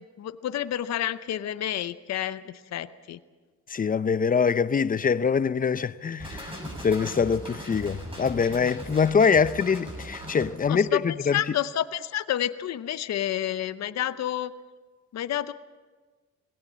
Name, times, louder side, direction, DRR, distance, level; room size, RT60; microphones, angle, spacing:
voice 1, 0.2-2.4 2.7-3.2 10.7-11.0 11.3-14.5 15.1-15.5, left 11 dB, 60° left, 0.8 m, -29 dB
voice 2, 3.7-6.5 6.8-11.4, left 6 dB, 30° left, 0.6 m, -24 dB
sound 1, 6.2-10.5, equal, 20° right, 7.9 m, -38 dB
20.0 x 17.5 x 7.5 m
cardioid pair, 90°, 30 cm